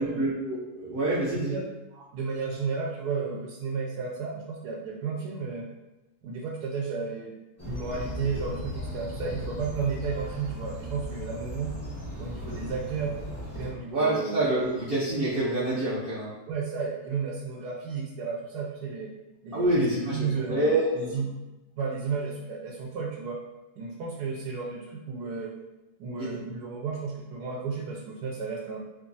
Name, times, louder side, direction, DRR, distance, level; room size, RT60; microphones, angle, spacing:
voice 1, 0.0-1.6 13.9-16.3 19.5-21.1 26.2-26.4, right 1 dB, 55° right, -8 dB, 0.6 m, -27 dB
voice 2, 1.3-1.7 2.1-5.6 6.2-7.3 7.6-11.7 12.2-13.2 13.5-14.4 16.5-19.1 19.4-21.3 21.8-23.4 23.8-25.5 26.0-28.8, right 5 dB, 75° right, -2 dB, 1.2 m, -33 dB
sound 1, 7.6-13.7, equal, 20° left, 0.4 m, -37 dB
3.1 x 2.4 x 3.8 m, 1.0 s
omnidirectional pair, 1.8 m